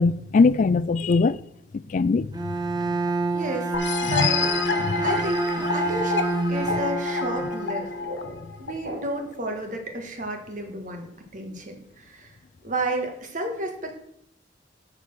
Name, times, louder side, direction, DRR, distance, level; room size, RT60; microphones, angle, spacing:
voice 1, 0.0-1.4 1.9-2.3 4.1-4.3 4.9-5.0 8.4-8.5, left 4 dB, 45° left, 0.3 m, -21 dB
Bowed string instrument, 2.3-8.3, right 2 dB, 20° right, 0.9 m, -27 dB
voice 2, 3.3-3.7 4.0-4.5 5.0-7.9 8.6-12.4 12.6-14.0, right 1 dB, 45° right, 1.7 m, -32 dB
sound 1, 3.7-9.2, left 6 dB, 80° left, 0.9 m, -29 dB
sound 2, 7.7-9.5, right 1 dB, 85° right, 2.8 m, -40 dB
6.9 x 6.7 x 6.2 m
head